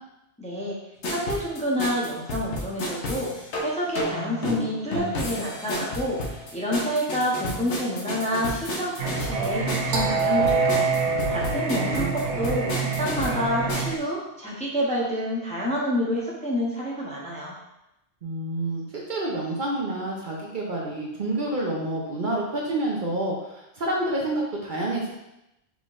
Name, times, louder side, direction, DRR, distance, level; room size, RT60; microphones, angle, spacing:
voice 1, 0.4-0.8 1.1-17.5, equal, 5° left, -5 dB, 0.7 m, -28 dB
sound 1, 1.0-14.0, left 1 dB, 80° left, 1.1 m, -32 dB
Singing, 9.0-14.0, right 4 dB, 85° right, 1.0 m, -26 dB
voice 2, 11.0-12.1 18.2-25.1, right 1 dB, 50° right, -3 dB, 0.7 m, -29 dB
4.7 x 3.7 x 2.5 m, 0.89 s
omnidirectional pair, 1.2 m